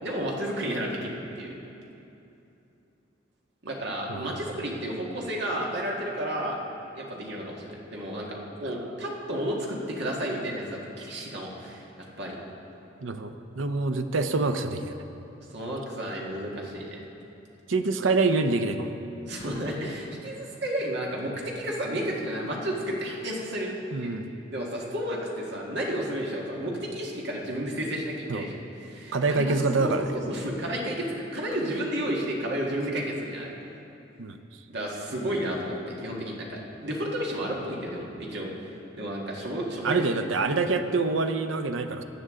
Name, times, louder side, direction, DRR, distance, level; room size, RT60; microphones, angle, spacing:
voice 1, 0.0-1.5 3.6-6.6 6.9-12.4 15.5-17.0 19.2-24.1 24.5-28.5 28.8-31.1 31.3-33.5 34.7-38.5 38.9-40.1, equal, 60° right, -2 dB, 1.7 m, -32 dB
voice 2, 4.1-4.4 13.0-15.0 17.7-18.9 23.9-24.3 28.3-28.5 29.1-30.1 34.2-34.4 39.8-42.0, right 3 dB, 80° right, 8 dB, 0.6 m, -26 dB
16.5 x 9.3 x 3.7 m, 2.8 s
head